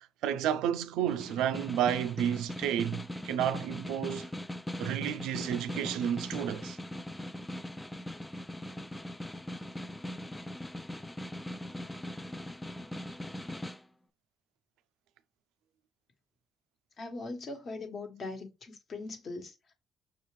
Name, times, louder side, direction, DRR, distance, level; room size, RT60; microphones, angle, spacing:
voice 1, 0.2-4.3 4.8-6.8, right 10 dB, 90° right, 0.4 m, -31 dB
Snare drum, 1.1-13.8, left 1 dB, 10° left, 0.3 m, -40 dB
voice 2, 17.0-19.7, left 3 dB, 45° left, 1.2 m, -41 dB
5.8 x 2.4 x 3.1 m
cardioid pair, 105°, 0 cm